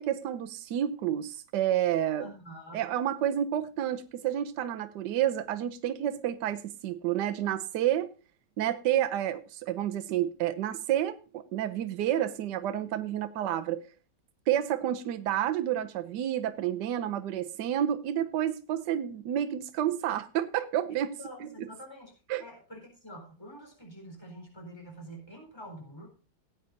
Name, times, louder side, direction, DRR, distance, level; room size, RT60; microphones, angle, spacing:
voice 1, 0.0-2.3 2.7-8.1 8.6-13.8 14.5-21.2 22.3-22.4, right 11 dB, 80° right, 1.3 m, -30 dB
voice 2, 2.2-2.9 21.2-22.1 22.4-26.1, equal, 15° left, 4.1 m, -46 dB
18.0 x 8.5 x 2.6 m
omnidirectional pair, 1.8 m